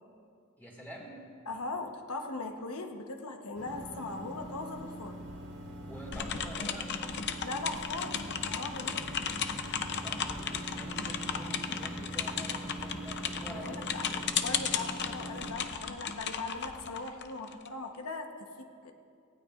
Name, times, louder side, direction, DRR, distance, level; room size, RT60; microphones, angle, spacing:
voice 1, 0.6-1.2 5.9-7.1 10.0-14.3, right 1 dB, 10° left, -3 dB, 2.0 m, -47 dB
voice 2, 1.5-5.2 7.4-9.4 13.5-14.0 14.4-18.9, left 3 dB, 80° left, 4 dB, 1.1 m, -40 dB
sound 1, 3.5-15.5, right 1 dB, 85° right, 3.6 m, -43 dB
sound 2, 6.1-17.7, left 7 dB, 50° left, 0.6 m, -35 dB
18.0 x 15.5 x 2.5 m, 2.4 s
head